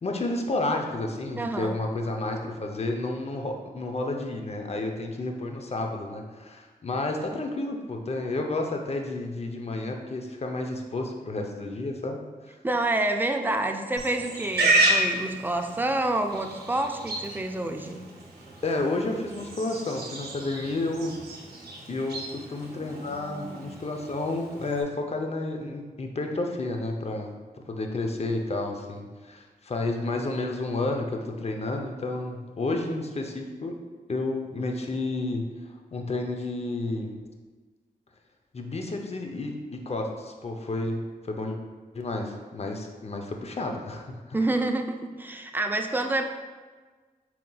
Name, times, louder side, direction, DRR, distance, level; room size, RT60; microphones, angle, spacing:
voice 1, 0.0-12.5 18.6-21.1 21.9-33.8 34.1-35.5 35.9-37.2 38.5-41.6 41.9-44.4, left 2 dB, 40° left, 3 dB, 0.6 m, -31 dB
voice 2, 1.4-1.8 12.6-18.0 44.3-46.3, right 2 dB, 10° right, 5 dB, 0.4 m, -28 dB
Livestock farm animals working animals, 14.0-24.8, right 2 dB, 90° right, 0.6 m, -31 dB
4.3 x 3.8 x 2.3 m, 1.4 s
cardioid pair, 45°, 16 cm